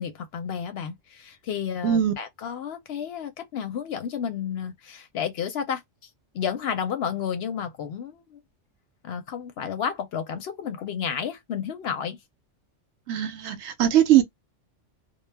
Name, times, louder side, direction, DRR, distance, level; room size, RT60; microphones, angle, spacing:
voice 1, 0.0-5.8 6.3-8.4 9.0-12.2, left 7 dB, 65° left, 0.7 m, -31 dB
voice 2, 1.8-2.1 13.1-14.2, right 11 dB, 70° right, 0.8 m, -20 dB
2.3 x 2.0 x 3.2 m
omnidirectional pair, 1.3 m